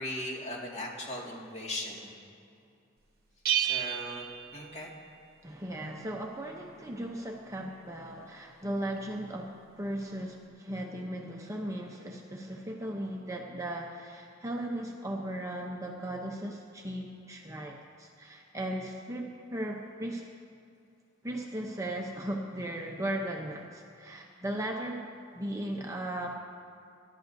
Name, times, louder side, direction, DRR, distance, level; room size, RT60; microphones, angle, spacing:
voice 1, 0.0-2.1 3.6-4.2 4.5-4.9, left 1 dB, 35° left, -2 dB, 2.1 m, -38 dB
Bell, 3.5-5.3, right 10 dB, 50° right, 0.9 m, -32 dB
voice 2, 3.6-4.0 5.4-20.2 21.2-26.4, right 1 dB, 15° right, 0 dB, 0.7 m, -37 dB
25.5 x 11.5 x 2.7 m, 2.5 s
head